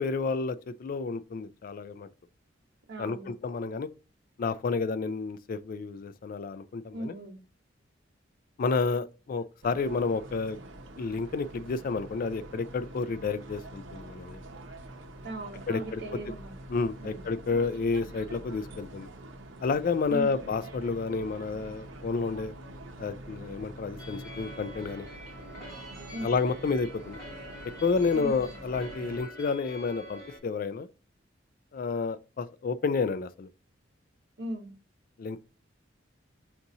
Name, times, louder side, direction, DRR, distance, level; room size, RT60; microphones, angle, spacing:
voice 1, 0.0-2.1 3.0-3.9 4.4-7.1 8.6-10.6 11.0-14.4 15.7-16.0 16.7-19.1 19.6-22.5 23.0-25.1 26.2-27.2 27.8-30.9 31.7-33.5 35.2-35.4, left 4 dB, 45° left, 0.3 m, -30 dB
voice 2, 2.9-3.3 6.9-7.4 15.2-16.6 17.0-17.3 20.1-20.4 26.1-26.3 28.1-28.6 34.4-34.7, right 1 dB, 65° right, 1.1 m, -38 dB
sound 1, 9.6-29.2, right 1 dB, 90° right, 0.7 m, -45 dB
sound 2, 24.0-30.4, equal, 15° left, 2.3 m, -46 dB
5.9 x 2.6 x 2.7 m
head